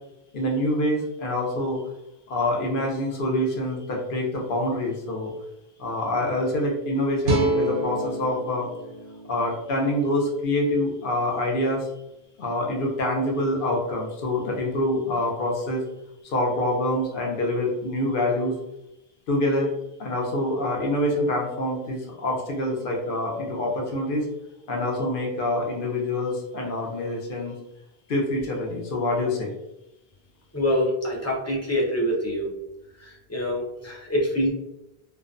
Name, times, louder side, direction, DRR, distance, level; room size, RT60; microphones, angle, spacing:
voice 1, 0.3-1.8 2.3-5.3 5.8-8.7 9.3-11.9 12.4-15.8 16.2-18.5 19.3-19.7 20.0-24.3 24.7-27.5 28.1-29.5, left 1 dB, 60° left, -1 dB, 0.8 m, -26 dB
sound 1, 7.2-10.4, right 1 dB, 75° right, 0.8 m, -28 dB
voice 2, 30.5-32.5 33.0-34.5, equal, 25° left, -3 dB, 0.4 m, -25 dB
2.4 x 2.1 x 2.4 m, 0.90 s
omnidirectional pair, 1.1 m